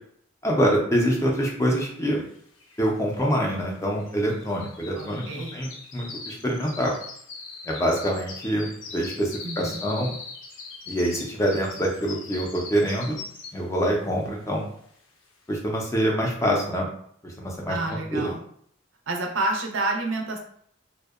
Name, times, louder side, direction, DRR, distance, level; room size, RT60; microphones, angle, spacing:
voice 1, 0.4-2.2 2.8-6.9 7.7-10.1 10.9-13.2 13.5-14.7 15.5-16.9 17.2-17.8 18.1-18.3, equal, 15° left, -1 dB, 0.4 m, -25 dB
sound 1, 2.1-2.2 2.4-13.8 14.2-14.5 15.0-15.1, left 4 dB, 80° left, 0.5 m, -41 dB
voice 2, 5.0-5.6 9.4-9.8 17.7-18.4 19.1-20.4, right 2 dB, 85° right, 2 dB, 0.5 m, -29 dB
2.6 x 2.0 x 2.3 m, 0.65 s
head